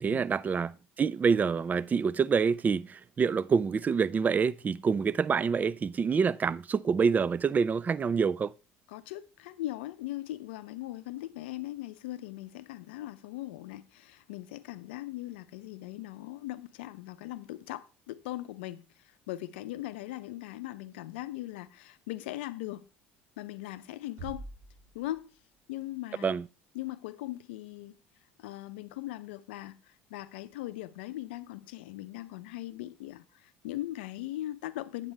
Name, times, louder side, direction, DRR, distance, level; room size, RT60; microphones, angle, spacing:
voice 1, 0.0-8.5 26.2-26.4, right 6 dB, 25° right, 0.3 m, -27 dB
voice 2, 8.9-18.9 19.3-22.9 23.4-24.5 24.9-25.3 25.7-26.4 26.7-28.0 28.4-35.1, left 15 dB, 75° left, 0.5 m, -39 dB
sound 1, 24.2-25.8, right 2 dB, 55° right, 5.5 m, -46 dB
8.7 x 8.0 x 3.3 m
hypercardioid pair, 65°, 6 cm